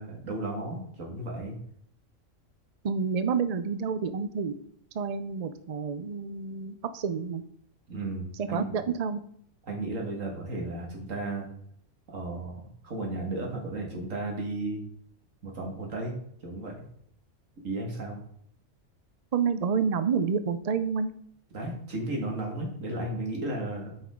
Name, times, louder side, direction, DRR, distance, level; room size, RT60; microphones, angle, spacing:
voice 1, 0.0-1.5 7.9-8.7 9.7-11.5 12.1-14.8 15.4-16.1 16.4-16.7 17.6-18.2 21.5-23.9, right 2 dB, 85° right, 0 dB, 2.2 m, -34 dB
voice 2, 2.8-4.5 4.9-7.4 8.4-9.2 19.3-21.1, right 6 dB, 55° right, 11 dB, 0.4 m, -29 dB
8.8 x 5.5 x 3.7 m, 0.66 s
omnidirectional pair, 1.3 m